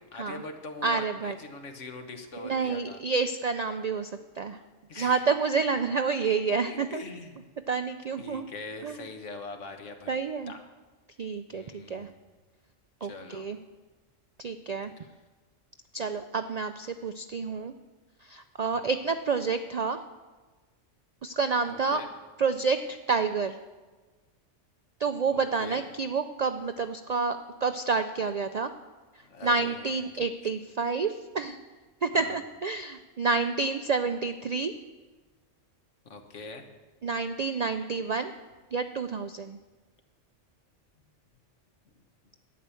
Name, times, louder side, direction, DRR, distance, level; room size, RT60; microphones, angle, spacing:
voice 1, 0.1-3.0 4.9-5.3 6.5-7.4 8.2-10.1 10.5-10.6 11.5-12.2 13.0-13.5 15.0-15.1 18.7-18.9 21.7-22.1 25.3-25.9 29.2-30.5 32.1-32.4 36.1-36.6, left 3 dB, 75° left, 5 dB, 1.6 m, -43 dB
voice 2, 0.8-1.4 2.4-4.6 4.9-7.0 7.7-8.4 8.8-9.0 10.1-10.5 11.2-12.1 13.0-13.6 14.4-14.9 15.9-17.7 18.2-20.0 21.2-22.0 22.4-23.6 25.0-28.7 29.1-31.6 32.0-34.7 37.0-38.3 38.7-39.6, right 4 dB, 60° right, 8 dB, 0.4 m, -29 dB
11.5 x 9.6 x 7.0 m, 1.3 s
omnidirectional pair, 1.3 m